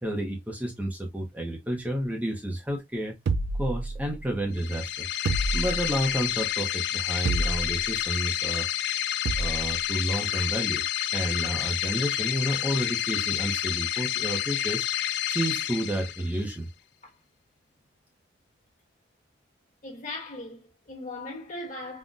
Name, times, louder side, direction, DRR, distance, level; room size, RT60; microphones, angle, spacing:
voice 1, 0.0-3.2 3.6-5.1 5.5-8.7 9.4-10.8 11.1-14.9 15.3-16.7, right 1 dB, 10° right, 0.5 m, -30 dB
sound 1, 3.3-4.4 5.3-6.1 7.3-7.9 9.3-9.7, right 3 dB, 60° right, 0.3 m, -29 dB
sound 2, 4.5-16.5, left 12 dB, 60° left, 0.3 m, -29 dB
voice 2, 19.8-22.0, left 2 dB, 40° left, 1.3 m, -38 dB
3.7 x 2.1 x 2.4 m
head